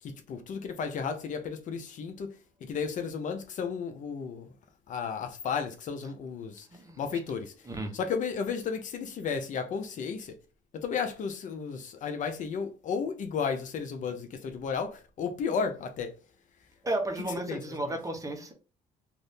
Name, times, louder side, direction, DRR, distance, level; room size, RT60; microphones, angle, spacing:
voice 1, 0.0-2.3 2.6-4.5 4.9-6.7 7.0-7.5 7.9-10.3 10.7-16.1 17.5-17.6, left 6 dB, 55° left, 0.6 m, -33 dB
voice 2, 7.7-8.0 16.8-18.5, right 1 dB, 20° right, 0.9 m, -33 dB
2.6 x 2.6 x 3.5 m
supercardioid pair, 80°, 16 cm